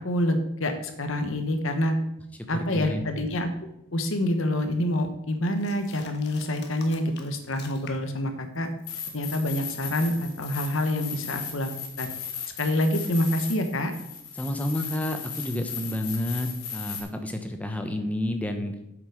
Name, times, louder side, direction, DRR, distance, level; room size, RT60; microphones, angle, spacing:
voice 1, 0.0-1.9 2.5-3.5 3.9-8.7 9.1-11.7 12.0-12.1 12.6-13.9, left 1 dB, 65° left, 6 dB, 1.2 m, -27 dB
voice 2, 2.5-3.0 14.4-18.7, left 1 dB, 5° left, 5 dB, 0.9 m, -30 dB
sound 1, 5.5-8.2 8.5-12.3, left 5 dB, 50° left, 1.3 m, -49 dB
sound 2, 8.9-17.0, left 7 dB, 90° left, 2.6 m, -37 dB
8.0 x 7.6 x 5.0 m, 0.84 s
head